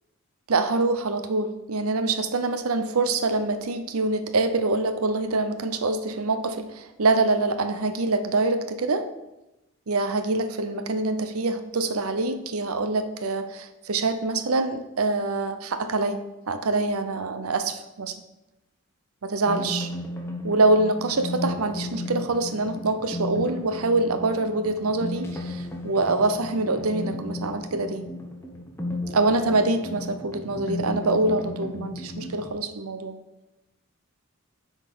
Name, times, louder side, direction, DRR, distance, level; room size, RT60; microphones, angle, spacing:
voice 1, 0.5-9.1 9.9-18.2 19.2-19.9 20.4-28.1 29.1-33.2, right 2 dB, 80° right, 9 dB, 0.7 m, -25 dB
sound 1, 19.5-32.5, left 1 dB, 10° left, 1.0 m, -34 dB
7.9 x 4.0 x 6.1 m, 0.98 s
head